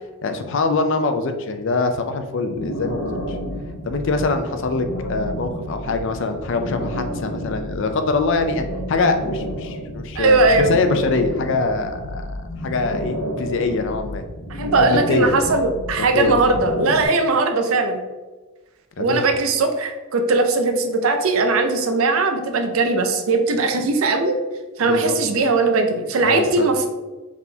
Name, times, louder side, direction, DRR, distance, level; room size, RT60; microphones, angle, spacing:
voice 1, 0.2-3.4 3.8-12.4 12.6-14.3 14.7-15.3 16.0-16.4 19.0-19.3 24.8-25.2 26.2-26.7, left 3 dB, 60° left, 7 dB, 0.4 m, -23 dB
sound 1, 2.5-17.1, equal, 80° left, 0.8 m, -31 dB
voice 2, 10.2-10.7 14.5-18.0 19.0-24.4 24.8-26.9, right 3 dB, 75° right, 6 dB, 0.5 m, -19 dB
4.0 x 3.6 x 2.8 m, 1.2 s
head